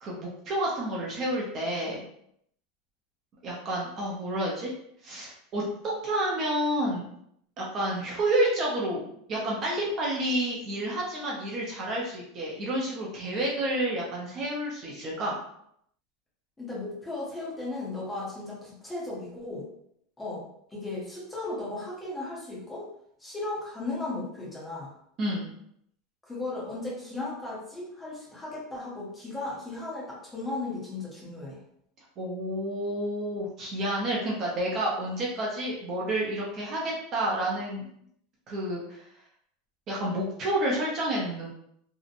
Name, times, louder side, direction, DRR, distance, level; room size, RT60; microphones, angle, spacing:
voice 1, 0.0-2.0 3.4-4.7 5.0-7.1 7.6-15.3 25.2-25.5 32.2-37.9 38.5-39.1 39.9-41.5, right 1 dB, 30° right, -3 dB, 0.5 m, -30 dB
voice 2, 16.6-19.7 20.2-20.4 20.7-22.9 23.2-24.9 26.2-31.6, left 2 dB, 10° left, -5 dB, 0.7 m, -36 dB
2.7 x 2.0 x 2.5 m, 0.70 s
supercardioid pair, 170°, 0 cm